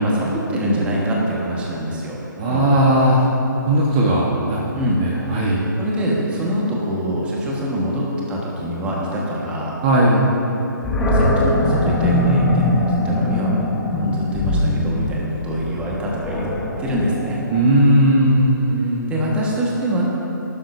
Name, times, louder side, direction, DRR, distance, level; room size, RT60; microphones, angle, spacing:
voice 1, 0.0-2.2 2.5-2.8 4.7-5.0 5.3-9.7 11.0-12.7 13.0-13.5 13.9-16.5 16.8-17.4 19.1-20.0, equal, 10° right, -4 dB, 1.6 m, -24 dB
voice 2, 2.4-3.2 3.7-5.6 9.8-10.3 17.5-19.2, right 1 dB, 25° right, -4 dB, 1.4 m, -17 dB
Animal, 10.8-18.0, left 1 dB, 10° left, 1.1 m, -21 dB
19.0 x 11.5 x 2.8 m, 3.0 s
figure-of-eight pair, 140°, 11 cm